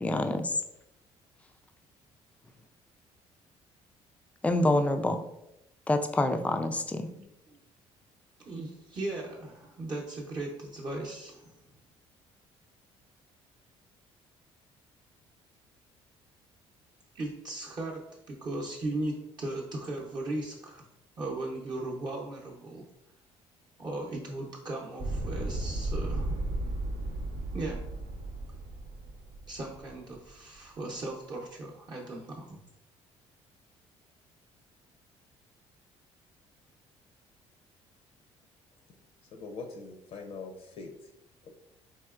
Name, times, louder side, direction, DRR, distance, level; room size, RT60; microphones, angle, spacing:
voice 1, 0.0-0.5 4.4-5.2 5.9-7.1, left 2 dB, 10° left, 7 dB, 0.3 m, -27 dB
voice 2, 8.4-11.4 17.1-20.8 21.2-22.9 23.8-26.4 27.5-27.8 29.5-32.6, right 2 dB, 40° right, -3 dB, 0.7 m, -37 dB
sound 1, 25.0-30.2, right 2 dB, 70° right, 0.7 m, -35 dB
voice 3, 39.3-40.9 41.4-41.5, left 4 dB, 60° left, 5 dB, 0.5 m, -42 dB
4.2 x 2.9 x 2.4 m, 0.86 s
cardioid pair, 110°, 11 cm